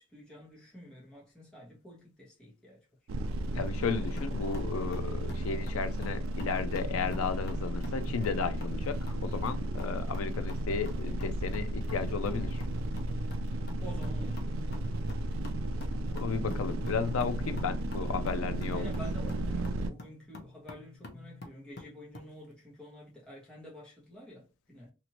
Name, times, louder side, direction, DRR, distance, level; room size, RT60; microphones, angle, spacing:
voice 1, 0.0-2.8 13.8-14.5 18.7-24.9, equal, 5° left, 0.9 m, -49 dB
sound 1, 3.1-19.9, right 1 dB, 80° right, 0.4 m, -34 dB
voice 2, 3.5-12.6 16.1-18.9, left 5 dB, 90° left, 0.4 m, -34 dB
sound 2, 4.2-22.3, left 2 dB, 50° left, 0.6 m, -48 dB
2.8 x 2.5 x 2.9 m
head